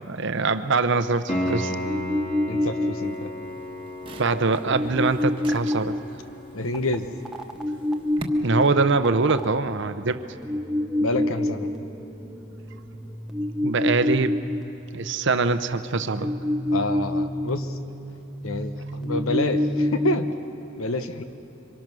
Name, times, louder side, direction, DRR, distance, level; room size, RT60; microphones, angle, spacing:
voice 1, 0.0-1.7 4.2-5.9 8.4-10.2 13.6-14.3 14.9-16.3, right 4 dB, 55° right, 11 dB, 0.8 m, -23 dB
Piano, 1.3-11.9 15.2-15.3, left 1 dB, 35° left, 3.3 m, -36 dB
sound 1, 1.5-1.6 1.8-3.1 4.3-6.0 6.7-7.0 7.3-20.3, left 1 dB, 5° right, 0.9 m, -28 dB
voice 2, 2.5-3.3 6.5-7.1 11.0-11.7 16.7-17.8 18.4-20.3 20.8-21.2, left 2 dB, 75° left, 9 dB, 1.2 m, -28 dB
sound 2, 3.0-8.2, right 2 dB, 25° right, 1.3 m, -45 dB
26.5 x 24.5 x 6.2 m, 2.9 s
head